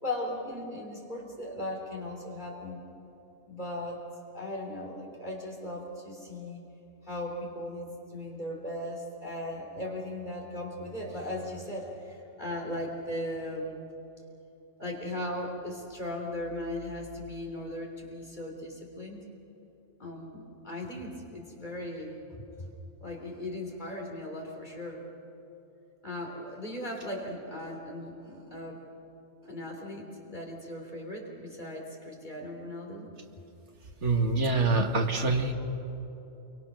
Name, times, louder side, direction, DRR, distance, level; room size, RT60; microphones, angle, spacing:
voice 1, 0.0-2.8 3.5-4.0 4.3-6.6 7.0-13.8 14.8-19.2 20.0-22.7 23.0-25.1 26.0-28.8 29.4-33.1, left 1 dB, 35° left, 0 dB, 3.4 m, -38 dB
voice 2, 34.0-35.5, right 3 dB, 65° right, 3 dB, 2.0 m, -25 dB
28.0 x 24.0 x 6.1 m, 3.0 s
omnidirectional pair, 1.3 m